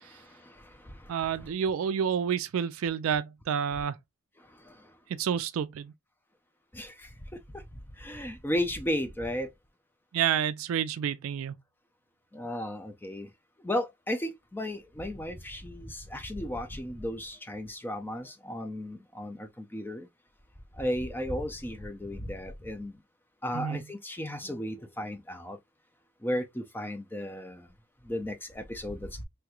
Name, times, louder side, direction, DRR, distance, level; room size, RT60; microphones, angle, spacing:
voice 1, 0.1-1.1 1.4-1.5 4.7-4.8 6.7-7.1 7.5-7.6 8.0-9.5 12.3-13.3 13.6-20.1 20.8-23.0 23.4-25.6 26.2-27.7 28.1-29.2, left 1 dB, 10° left, 0.4 m, -35 dB
voice 2, 1.1-4.0 5.1-5.9 10.1-11.6 23.5-23.8, right 8 dB, 70° right, 0.3 m, -29 dB
3.3 x 2.9 x 2.3 m
head